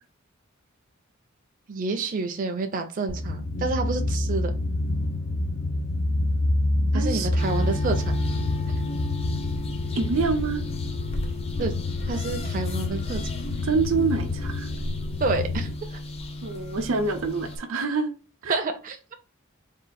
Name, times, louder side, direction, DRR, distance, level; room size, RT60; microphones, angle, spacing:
voice 1, 1.7-4.5 6.9-8.1 8.7-8.8 11.6-11.7 12.1-13.2 15.2-16.0 18.5-19.0, right 3 dB, 40° right, 0.4 m, -29 dB
sound 1, 3.1-15.7, left 2 dB, 90° left, 0.6 m, -28 dB
voice 2, 6.9-7.3 9.9-10.6 13.6-14.7 16.4-18.1 18.4-18.6, right 4 dB, 90° right, 0.7 m, -26 dB
sound 2, 7.4-17.6, left 1 dB, 30° left, 0.5 m, -34 dB
3.7 x 2.4 x 4.1 m
head